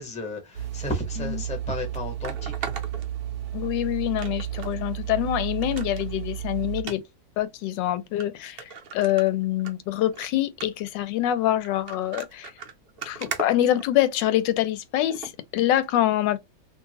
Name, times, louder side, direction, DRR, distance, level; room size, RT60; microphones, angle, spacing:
voice 1, 0.0-2.7, left 1 dB, 5° left, 0.6 m, -33 dB
sound 1, 0.5-6.8, right 11 dB, 70° right, 1.0 m, -32 dB
sound 2, 1.2-1.3 2.2-3.7 4.2-4.8 5.1-5.2 5.6-6.1 6.8-7.0 7.7-7.8 8.2-8.3 8.6-9.7 10.1-10.3 10.6-10.9 11.6-14.3 15.1-15.3 15.8-15.9, right 6 dB, 90° right, 0.5 m, -38 dB
voice 2, 3.5-7.0 7.4-8.6 8.9-12.5 13.1-16.4, left 13 dB, 85° left, 1.2 m, -25 dB
2.8 x 2.5 x 2.8 m
omnidirectional pair, 1.9 m